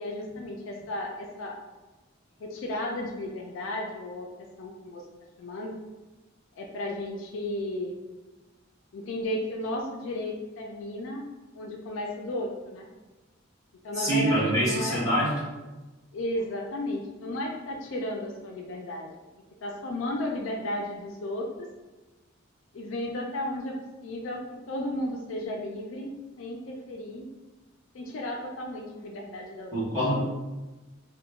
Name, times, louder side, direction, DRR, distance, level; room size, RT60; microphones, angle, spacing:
voice 1, 0.0-1.6 2.4-4.3 4.6-5.0 5.4-5.8 6.6-7.9 8.9-11.3 11.5-12.9 13.8-15.1 16.1-19.1 19.6-21.7 22.7-23.7 24.0-24.4 24.7-26.1 26.4-27.3 27.9-29.7, left 1 dB, 75° left, 1 dB, 0.4 m, -34 dB
voice 2, 14.0-15.4 29.7-30.2, right 1 dB, 15° left, -8 dB, 1.2 m, -25 dB
2.9 x 2.1 x 3.4 m, 1.2 s
head